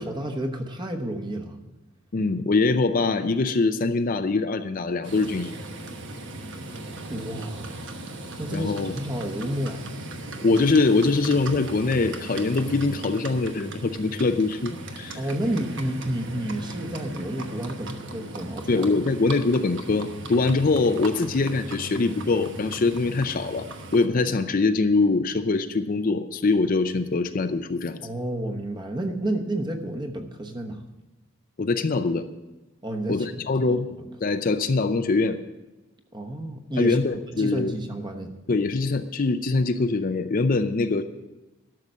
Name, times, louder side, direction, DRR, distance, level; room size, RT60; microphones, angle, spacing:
voice 1, 0.0-1.6 7.1-7.7 8.4-9.9 15.2-18.9 28.0-30.8 32.8-33.3 33.6-33.8 36.1-37.0 37.3-38.3, right 1 dB, 20° right, 4 dB, 1.0 m, -30 dB
voice 2, 2.1-5.6 8.5-8.9 10.4-15.2 18.7-23.7 23.9-28.0 31.6-32.3 33.1-33.9 34.2-35.4 36.8-37.8 38.5-41.0, left 3 dB, 40° left, 9 dB, 0.5 m, -23 dB
Livestock farm animals working animals, 5.0-24.1, right 2 dB, 55° right, 1.1 m, -38 dB
12.5 x 6.6 x 7.4 m, 1.1 s
head